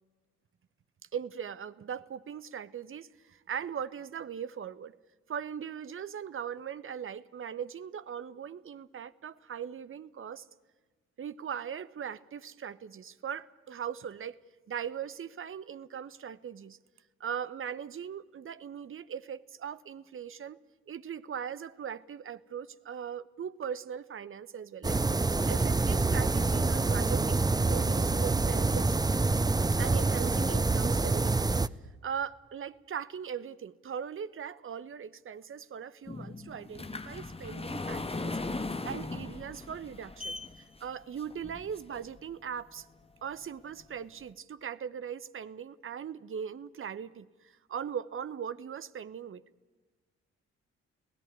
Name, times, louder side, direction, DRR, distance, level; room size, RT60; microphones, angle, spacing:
voice 1, 1.1-4.9 5.3-10.4 11.2-14.3 14.7-16.8 17.2-20.6 20.9-25.0 25.5-29.0 29.8-31.4 32.0-38.6 38.8-40.4 40.8-42.9 43.2-49.4, right 8 dB, 35° right, 15 dB, 1.0 m, -39 dB
sound 1, 24.8-31.7, right 3 dB, 10° right, 0.6 m, -26 dB
sound 2, 36.1-42.2 42.8-42.9 43.4-43.5 43.8-43.9, left 2 dB, 15° left, 1.6 m, -38 dB
25.0 x 17.0 x 9.4 m, 1.3 s
figure-of-eight pair, 40°, 35 cm